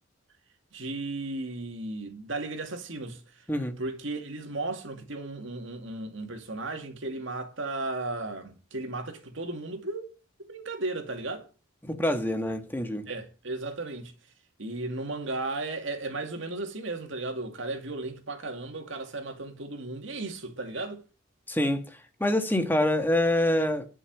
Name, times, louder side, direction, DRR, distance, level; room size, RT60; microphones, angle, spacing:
voice 1, 0.7-3.2 3.8-10.1 10.5-11.5 13.1-14.1 14.6-21.0, right 2 dB, 65° right, 2.4 m, -35 dB
voice 2, 11.8-13.1 21.5-23.9, left 1 dB, 10° left, 1.5 m, -26 dB
11.0 x 6.3 x 7.6 m
head